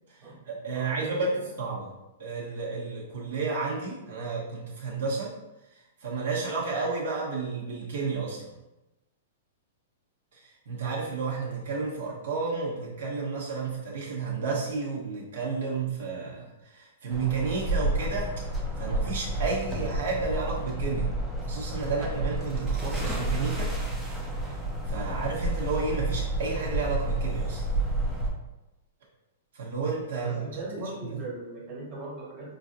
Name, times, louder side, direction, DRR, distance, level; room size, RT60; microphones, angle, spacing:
voice 1, 0.2-1.3 1.6-1.9 2.2-5.3 6.0-8.5 10.3-18.3 18.8-23.7 24.4-24.6 24.9-27.6 29.5-30.4 31.0-31.2, right 4 dB, 65° right, -4 dB, 0.9 m, -32 dB
voice 2, 0.7-1.5 25.0-25.3 30.4-32.5, right 2 dB, 20° right, -6 dB, 1.3 m, -39 dB
sound 1, 17.1-28.3, right 1 dB, 5° right, 0.5 m, -30 dB
4.9 x 2.4 x 2.6 m, 0.98 s
hypercardioid pair, 170°, 0 cm